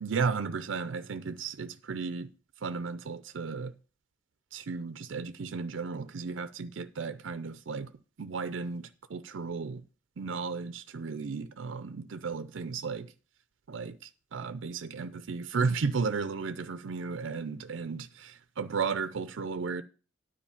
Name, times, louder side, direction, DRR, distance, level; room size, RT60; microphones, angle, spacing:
voice 1, 0.0-2.3 2.6-3.7 4.5-7.9 8.2-9.8 10.2-13.1 13.7-19.8, right 5 dB, 70° right, 0.5 m, -34 dB
9.9 x 4.8 x 7.1 m
head